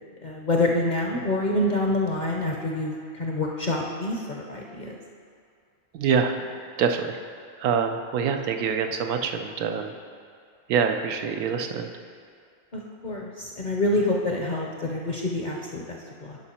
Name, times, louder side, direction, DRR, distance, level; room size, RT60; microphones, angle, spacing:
voice 1, 0.2-5.0 12.7-16.4, left 1 dB, 45° left, -1 dB, 0.6 m, -27 dB
voice 2, 5.9-7.2 7.6-9.9 10.7-11.9, right 6 dB, 90° right, 5 dB, 1.1 m, -25 dB
10.5 x 5.3 x 4.2 m, 2.3 s
omnidirectional pair, 1.5 m